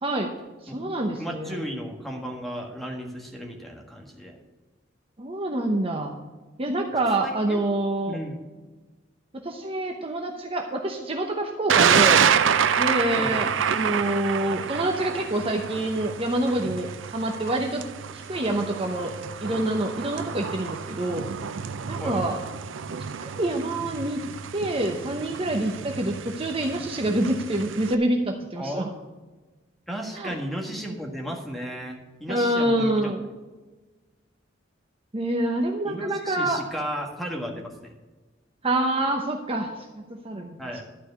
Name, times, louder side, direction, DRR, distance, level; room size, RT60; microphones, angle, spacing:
voice 1, 0.0-0.3 0.6-1.6 5.2-6.2 6.6-8.2 9.3-12.3 12.8-17.8 18.1-19.1 19.4-21.3 21.9-22.4 23.2-24.2 24.5-28.9 30.1-30.3 32.3-33.2 35.1-36.6 38.6-39.7 40.2-40.6, right 1 dB, 30° right, 3 dB, 0.8 m, -26 dB
voice 2, 1.2-4.3 7.2-7.6 8.1-8.4 13.1-13.5 22.0-22.2 28.5-29.1 29.9-33.1 35.8-37.9 40.6-40.8, equal, ahead, 0 dB, 1.6 m, -34 dB
Thunder, 11.7-27.9, right 7 dB, 80° right, 0.5 m, -27 dB
12.0 x 4.8 x 8.1 m, 1.2 s
head